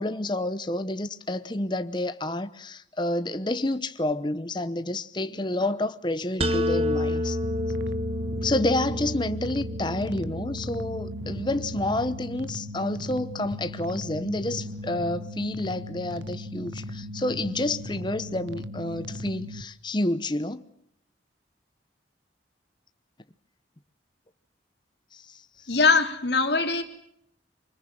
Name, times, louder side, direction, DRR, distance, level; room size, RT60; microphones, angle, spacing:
voice 1, 0.0-7.4 7.8-7.9 8.4-20.6 25.1-25.4, left 1 dB, 25° left, 0.9 m, -29 dB
sound 1, 6.4-12.2, left 1 dB, 30° right, 1.3 m, -30 dB
sound 2, 7.4-19.6, left 1 dB, 75° right, 1.4 m, -38 dB
voice 2, 25.7-26.8, left 4 dB, 60° left, 3.2 m, -22 dB
25.0 x 20.5 x 7.6 m
head